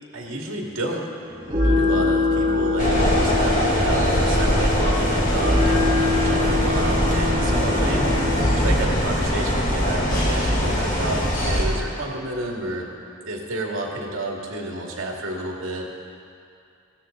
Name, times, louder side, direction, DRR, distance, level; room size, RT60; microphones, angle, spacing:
voice 1, 0.1-1.1 1.5-8.1 8.6-12.9 13.3-15.9, right 1 dB, 75° right, -1 dB, 2.2 m, -30 dB
sound 1, 1.2-8.7, left 3 dB, 25° right, 3.4 m, -24 dB
sound 2, 2.8-11.6, equal, 40° left, 2.4 m, -22 dB
17.0 x 13.0 x 3.9 m, 2.4 s
head